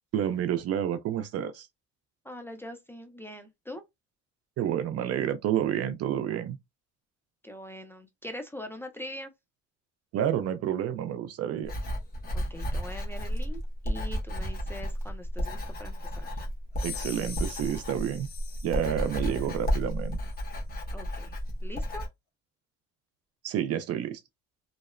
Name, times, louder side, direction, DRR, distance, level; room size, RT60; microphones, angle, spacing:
voice 1, 0.1-1.7 4.6-6.6 10.1-11.7 16.8-18.3 18.6-20.2 23.4-24.2, right 10 dB, 50° right, 0.5 m, -29 dB
voice 2, 2.2-3.8 7.4-9.3 12.3-16.3 20.9-22.0, left 1 dB, 5° left, 0.4 m, -42 dB
Writing, 11.6-22.1, equal, 30° left, 1.0 m, -32 dB
sound 1, 16.8-19.7, left 7 dB, 45° left, 1.3 m, -43 dB
2.7 x 2.0 x 2.4 m
cardioid pair, 95°, 31 cm